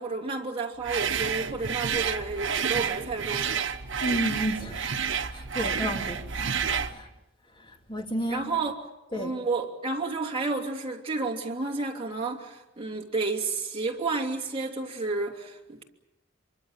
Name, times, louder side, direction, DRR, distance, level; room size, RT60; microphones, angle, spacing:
voice 1, 0.0-3.6 5.6-5.7 8.3-8.7 9.1-15.8, right 3 dB, 30° right, 3.0 m, -31 dB
sound 1, 0.8-7.0, right 6 dB, 70° right, 1.2 m, -29 dB
voice 2, 4.0-4.8 5.3-6.5 6.8-7.1 7.5-8.5 9.1-9.3, equal, 25° left, 2.6 m, -32 dB
26.0 x 24.0 x 7.3 m
head